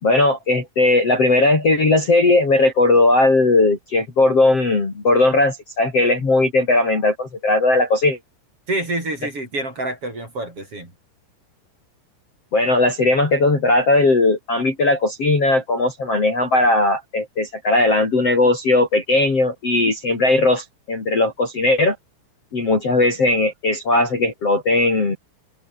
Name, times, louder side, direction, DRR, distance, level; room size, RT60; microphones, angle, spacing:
voice 1, 0.0-8.2 12.5-21.9 22.5-25.2, left 2 dB, 30° left, 4.8 m, -18 dB
voice 2, 8.7-10.9, right 2 dB, 25° right, 7.7 m, -27 dB
omnidirectional pair, 6.0 m